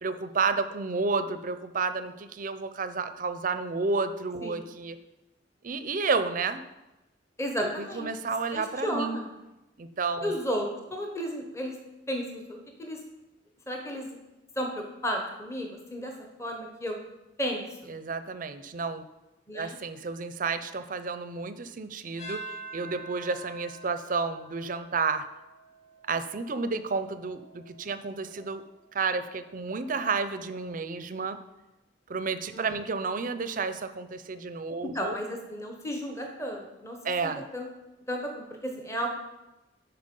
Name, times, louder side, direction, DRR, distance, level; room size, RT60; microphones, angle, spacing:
voice 1, 0.0-5.0 5.6-6.6 7.6-9.2 9.8-10.4 17.9-19.0 19.5-22.4 22.7-25.3 26.1-28.6 28.9-31.4 32.1-35.2 37.0-37.4, right 4 dB, 45° right, 11 dB, 0.5 m, -31 dB
voice 2, 7.4-8.1 8.5-9.2 10.2-11.7 12.1-13.0 13.7-14.1 14.6-16.1 16.4-17.0 17.4-17.9 19.5-19.8 32.5-32.8 34.8-37.0 37.2-37.7 38.1-39.1, equal, 15° left, 2 dB, 1.0 m, -33 dB
sound 1, 22.2-30.7, right 3 dB, 40° left, 3.5 m, -47 dB
10.5 x 4.4 x 5.3 m, 1.0 s
head